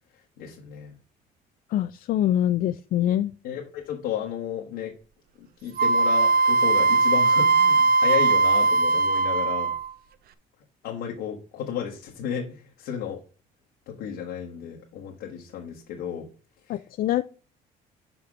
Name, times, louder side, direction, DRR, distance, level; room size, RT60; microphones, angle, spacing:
voice 1, 0.4-0.9 3.4-4.9 5.4-9.7 10.8-13.2 13.9-16.3 16.7-16.8, left 8 dB, 85° left, -1 dB, 1.4 m, -33 dB
voice 2, 1.7-3.3 16.7-17.2, left 12 dB, 60° left, 11 dB, 0.4 m, -24 dB
Wind instrument woodwind instrument, 5.8-9.9, right 3 dB, 60° right, 0.6 m, -20 dB
5.8 x 5.2 x 6.0 m, 0.38 s
cardioid pair, 110°, 17 cm